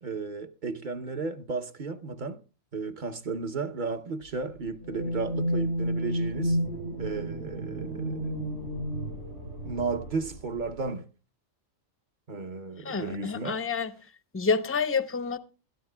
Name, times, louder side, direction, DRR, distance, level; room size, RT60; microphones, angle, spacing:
voice 1, 0.0-2.4 2.7-6.6 7.0-8.4 9.6-11.1 12.3-13.6, right 4 dB, 45° right, 0.8 m, -34 dB
sound 1, 4.8-10.8, equal, 65° right, 5.1 m, -31 dB
voice 2, 12.8-13.9 14.3-15.4, left 5 dB, 15° left, 0.5 m, -28 dB
21.0 x 13.5 x 2.2 m
omnidirectional pair, 1.4 m